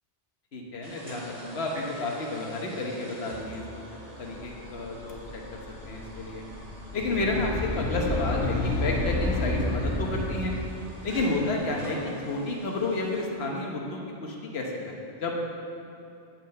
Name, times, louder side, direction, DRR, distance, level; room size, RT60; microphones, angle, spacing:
voice 1, 0.5-3.6 4.2-5.6 5.9-6.4 6.9-10.5 11.0-15.3, left 2 dB, 60° left, -1 dB, 1.4 m, -31 dB
sound 1, 0.8-13.3, right 1 dB, 80° right, 2.1 m, -45 dB
sound 2, 4.2-9.3, left 2 dB, 35° left, 1.6 m, -47 dB
sound 3, 6.8-10.8, left 2 dB, 85° left, 1.6 m, -29 dB
8.8 x 5.6 x 7.6 m, 2.6 s
omnidirectional pair, 1.2 m